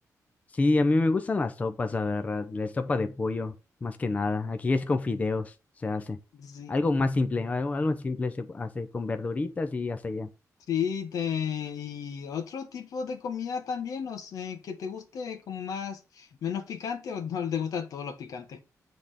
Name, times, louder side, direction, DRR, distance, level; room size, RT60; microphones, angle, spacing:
voice 1, 0.5-3.5 3.8-6.2 6.7-10.3, left 3 dB, 25° left, 0.6 m, -28 dB
voice 2, 6.3-6.8 10.7-18.6, left 7 dB, 85° left, 1.4 m, -33 dB
8.0 x 3.6 x 6.4 m
wide cardioid pair, 145°, 6 cm